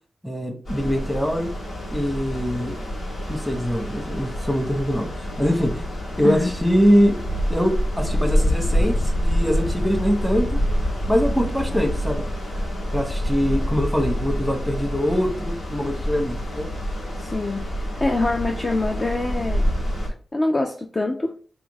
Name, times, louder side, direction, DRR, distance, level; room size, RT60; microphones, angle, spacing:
voice 1, 0.2-1.5 1.9-2.8 3.3-5.9 6.2-7.2 7.5-10.6 11.1-12.2 12.9-16.7, equal, 5° left, 3 dB, 1.0 m, -23 dB
sound 1, 0.6-20.1, equal, 90° left, 2.0 m, -26 dB
voice 2, 17.2-17.7 18.0-19.7 20.3-21.3, left 2 dB, 30° left, 2 dB, 0.5 m, -24 dB
3.7 x 3.4 x 3.5 m, 0.41 s
wide cardioid pair, 130°, 0 cm